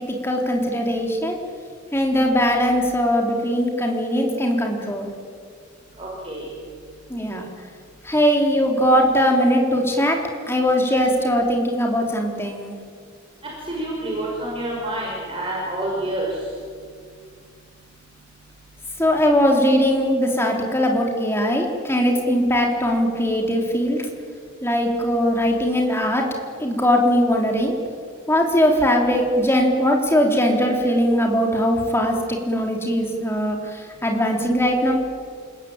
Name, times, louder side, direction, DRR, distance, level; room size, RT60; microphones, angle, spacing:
voice 1, 0.0-1.4 1.9-5.1 7.1-7.4 8.1-10.2 10.5-12.7 19.0-24.0 24.6-26.2 26.6-27.7 28.3-33.6 34.0-34.9, equal, 10° left, 1 dB, 3.7 m, -20 dB
voice 2, 6.0-6.5 13.7-16.3, right 1 dB, 30° right, -4 dB, 5.9 m, -28 dB
29.0 x 20.5 x 9.0 m, 2.2 s
head